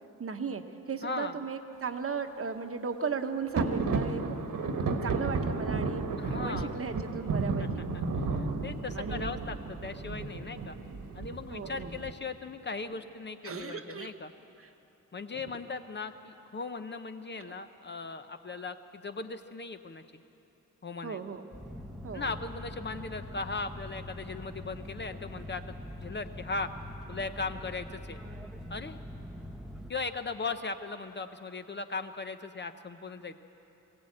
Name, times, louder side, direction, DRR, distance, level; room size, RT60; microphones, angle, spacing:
voice 1, 0.2-4.4 5.0-6.0 6.3-7.8 8.9-9.3 11.5-12.0 13.4-14.1 14.6-14.7 15.3-15.4 21.0-21.5 22.0-22.3, right 5 dB, 45° right, 7 dB, 1.0 m, -36 dB
voice 2, 1.0-1.3 6.2-6.7 7.6-8.0 8.3-10.8 11.1-14.3 15.1-20.0 20.8-21.3 22.1-26.7 27.1-28.2 28.7-29.0 29.9-33.3, left 4 dB, 35° left, 9 dB, 0.7 m, -38 dB
sound 1, 3.5-12.1, right 3 dB, 70° right, 1.5 m, -33 dB
sound 2, 21.5-29.9, left 1 dB, ahead, 0.8 m, -43 dB
21.5 x 17.0 x 8.7 m, 3.0 s
wide cardioid pair, 155°, 33 cm